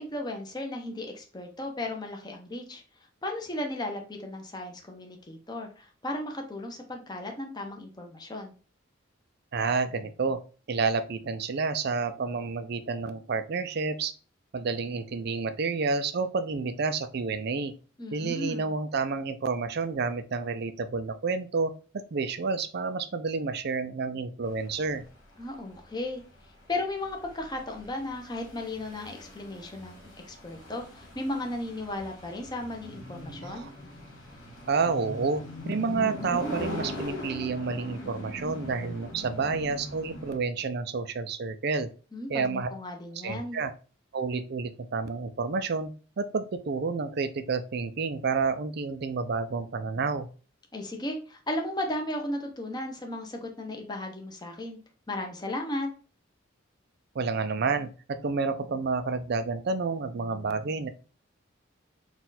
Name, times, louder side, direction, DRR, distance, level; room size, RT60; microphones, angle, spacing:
voice 1, 0.0-2.8 3.2-8.5 18.0-18.7 25.4-26.2 26.7-33.7 42.1-43.6 50.7-54.8 55.1-55.9, left 1 dB, 20° left, 3 dB, 0.8 m, -35 dB
voice 2, 9.5-10.4 10.7-14.1 14.5-17.7 18.1-21.7 22.1-25.0 33.4-33.7 34.7-41.9 42.3-42.7 43.2-43.7 44.1-45.9 46.2-50.3 57.1-60.9, right 4 dB, 55° right, 10 dB, 0.4 m, -29 dB
sound 1, 24.5-40.4, left 1 dB, 75° left, 1.8 m, -41 dB
4.3 x 2.4 x 3.9 m, 0.36 s
head